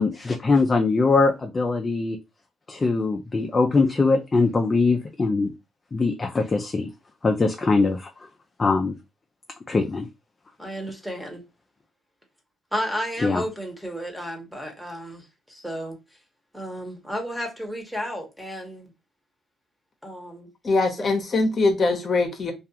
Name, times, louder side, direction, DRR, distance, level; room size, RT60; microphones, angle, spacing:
voice 1, 0.0-2.2 2.7-5.5 5.9-6.9 7.2-8.1 8.6-9.0 9.7-10.1 13.2-13.4, left 3 dB, 30° left, 0.4 m, -22 dB
voice 2, 10.6-11.4 12.7-16.0 16.5-18.9 20.0-20.5 21.0-21.2, equal, 5° right, 0.9 m, -33 dB
voice 3, 20.6-22.5, left 3 dB, 45° left, 0.7 m, -22 dB
2.3 x 2.3 x 2.8 m
cardioid pair, 90°, 0 cm